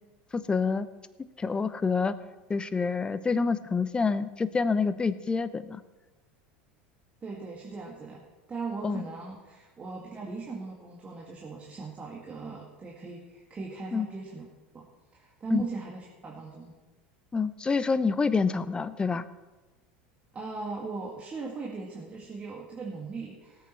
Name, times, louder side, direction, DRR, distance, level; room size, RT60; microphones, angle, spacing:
voice 1, 0.3-0.9 1.4-2.1 2.5-5.8 8.8-9.0 13.9-14.1 15.5-15.6 17.3-19.2, left 4 dB, 20° left, 15 dB, 0.8 m, -27 dB
voice 2, 7.2-8.2 8.5-14.5 14.7-14.9 15.1-16.7 20.3-23.7, right 4 dB, 25° right, -2 dB, 2.2 m, -39 dB
18.0 x 8.2 x 4.6 m, 1.2 s
hypercardioid pair, 90°, 5 cm